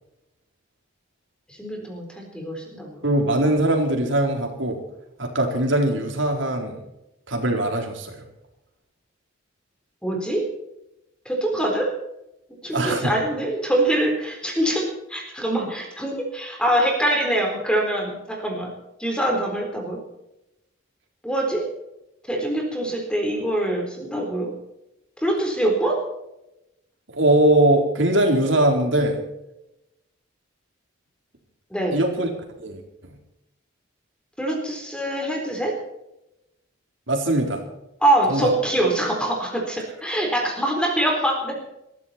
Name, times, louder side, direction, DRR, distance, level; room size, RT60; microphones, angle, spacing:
voice 1, 1.5-3.0 10.0-10.4 11.3-11.9 12.5-18.7 19.0-20.0 21.2-21.6 22.3-24.5 25.2-26.0 31.7-32.0 34.4-35.7 38.0-41.6, right 1 dB, 5° left, 1 dB, 4.1 m, -24 dB
voice 2, 3.0-4.8 5.2-6.8 7.3-8.2 12.7-13.1 27.2-29.2 31.9-32.3 32.6-32.8 37.1-37.6 38.3-38.5, right 1 dB, 70° right, 2 dB, 4.1 m, -21 dB
21.5 x 15.0 x 4.4 m, 0.89 s
head